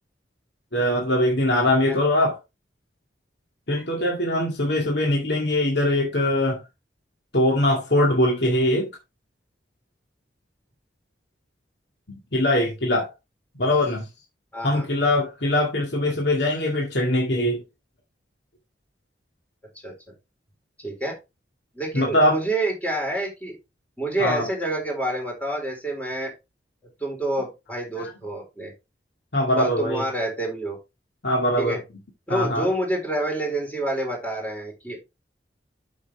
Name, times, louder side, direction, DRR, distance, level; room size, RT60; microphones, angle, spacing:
voice 1, 0.7-2.4 3.7-6.6 7.3-8.9 12.3-13.1 13.6-14.1 14.6-17.6 21.9-22.4 24.2-24.5 28.0-28.1 29.3-30.1 31.2-31.8 32.3-32.7, left 1 dB, 70° left, 2.1 m, -22 dB
voice 2, 14.5-14.9 19.8-19.9 20.8-21.2 21.7-23.6 24.0-26.3 27.0-28.7 29.6-30.8 31.6-31.8 32.3-35.0, right 1 dB, 10° left, 4.1 m, -28 dB
8.5 x 7.1 x 3.4 m
head